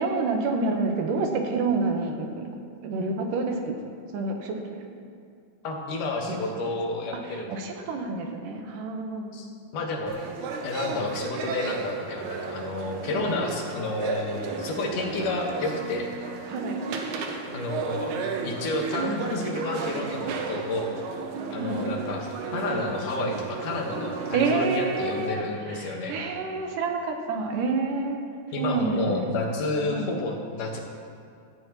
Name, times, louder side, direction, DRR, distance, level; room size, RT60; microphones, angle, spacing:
voice 1, 0.0-2.4 2.8-3.7 4.1-4.8 6.3-6.8 7.2-9.3 13.0-13.3 16.5-16.8 21.6-21.9 24.3-28.2 28.6-29.3 29.8-30.1, right 3 dB, 90° right, 3 dB, 2.8 m, -28 dB
voice 2, 5.6-7.6 9.3-9.5 9.7-10.2 10.6-16.1 17.5-18.2 18.4-20.9 21.5-26.2 28.5-30.8, left 2 dB, 80° left, 0 dB, 3.1 m, -30 dB
sound 1, 10.1-25.3, right 5 dB, 75° right, 2.3 m, -34 dB
16.5 x 14.0 x 3.1 m, 2.3 s
omnidirectional pair, 3.7 m